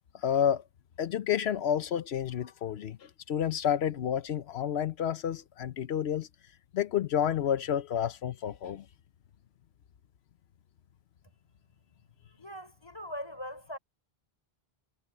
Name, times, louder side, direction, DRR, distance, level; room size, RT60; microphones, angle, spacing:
voice 1, 0.2-0.6 1.0-3.0 3.3-6.3 6.7-8.8, left 9 dB, 90° left, 1.0 m, -30 dB
voice 2, 12.4-13.8, equal, 25° left, 4.4 m, -41 dB
omnidirectional pair, 1.0 m